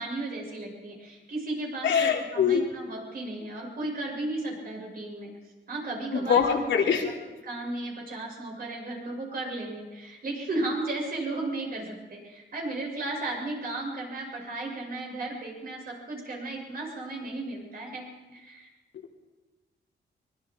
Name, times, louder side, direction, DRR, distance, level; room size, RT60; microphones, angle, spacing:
voice 1, 0.0-5.3 5.7-6.6 7.0-7.1 7.4-18.7, right 2 dB, 55° right, -1 dB, 7.0 m, -35 dB
voice 2, 1.8-2.7 6.1-7.1, left 7 dB, 80° left, 1 dB, 3.5 m, -23 dB
24.0 x 23.0 x 4.7 m, 1.2 s
wide cardioid pair, 150°, 19 cm